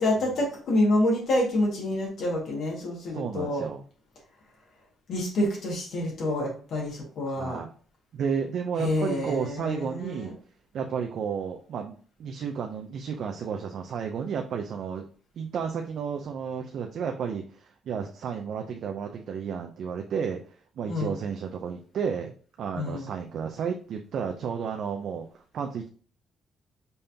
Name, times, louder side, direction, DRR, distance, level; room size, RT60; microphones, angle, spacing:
voice 1, 0.0-3.7 5.1-7.6 8.8-10.3 20.9-21.2 22.7-23.1, left 1 dB, 65° left, -2 dB, 1.8 m, -27 dB
voice 2, 3.1-3.8 7.4-7.7 8.1-10.3 10.7-15.0 15.4-20.4 20.8-22.3 22.6-25.9, right 6 dB, 65° right, 3 dB, 0.5 m, -32 dB
5.4 x 3.4 x 2.8 m, 0.42 s
cardioid pair, 90°, 0 cm